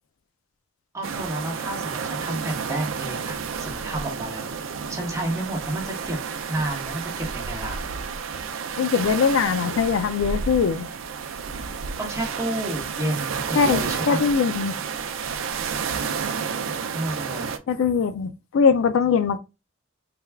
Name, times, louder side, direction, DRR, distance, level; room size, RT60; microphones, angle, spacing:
voice 1, 0.9-6.2 6.5-7.8 12.0-14.2 16.9-17.5, right 1 dB, 15° right, 1.0 m, -31 dB
sound 1, 1.0-17.6, right 6 dB, 65° right, 0.4 m, -31 dB
voice 2, 8.8-10.9 13.6-14.7 17.7-19.4, left 6 dB, 70° left, 0.4 m, -21 dB
3.3 x 2.3 x 3.3 m
head